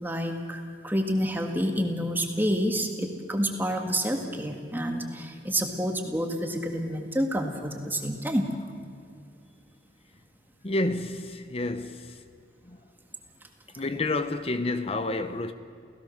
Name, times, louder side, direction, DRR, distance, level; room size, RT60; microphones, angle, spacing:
voice 1, 0.0-8.5, equal, 10° right, 1.7 m, -28 dB
voice 2, 10.6-12.2 12.6-12.8 13.7-15.5, left 2 dB, 30° left, 0.8 m, -29 dB
29.5 x 16.5 x 6.5 m
head